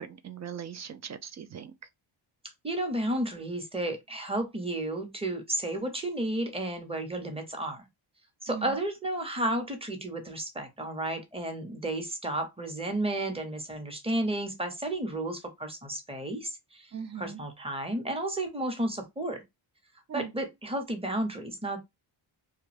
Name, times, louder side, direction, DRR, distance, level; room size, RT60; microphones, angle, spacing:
voice 1, 0.0-1.7 8.5-8.7 16.9-17.4 20.1-20.3, right 7 dB, 35° right, 0.4 m, -39 dB
voice 2, 2.6-7.9 8.4-19.4 20.1-21.8, right 1 dB, 10° right, 0.9 m, -32 dB
2.3 x 2.3 x 3.2 m
cardioid pair, 70°, 49 cm